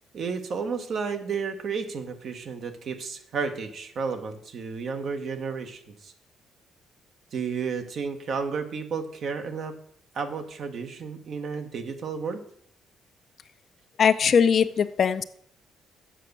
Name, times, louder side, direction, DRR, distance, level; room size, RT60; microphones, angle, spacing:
voice 1, 0.1-6.1 7.3-9.8 10.1-12.4, right 5 dB, 60° right, 6 dB, 1.2 m, -32 dB
voice 2, 14.0-15.2, left 7 dB, 55° left, 12 dB, 0.5 m, -20 dB
7.6 x 5.9 x 6.7 m, 0.63 s
cardioid pair, 90°, 0 cm